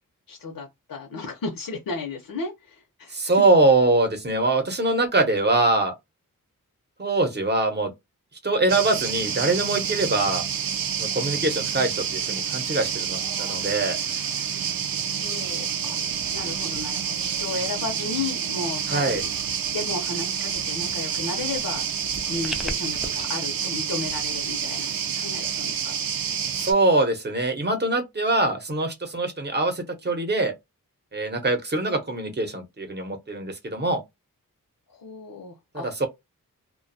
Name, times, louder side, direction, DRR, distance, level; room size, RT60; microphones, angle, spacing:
voice 1, 0.3-3.3 15.1-16.0 16.3-19.2 19.7-21.8 22.2-25.9 34.9-35.9, left 4 dB, 75° left, 0.7 m, -34 dB
voice 2, 3.1-5.9 7.0-7.9 8.4-10.4 11.0-14.0 18.9-19.2 26.6-30.5 31.1-34.0 36.0-36.1, right 2 dB, 30° right, 0.7 m, -23 dB
sound 1, 8.7-26.7, right 7 dB, 85° right, 0.5 m, -28 dB
sound 2, 21.3-23.2, equal, ahead, 0.4 m, -37 dB
2.4 x 2.2 x 2.6 m
wide cardioid pair, 100°, 34 cm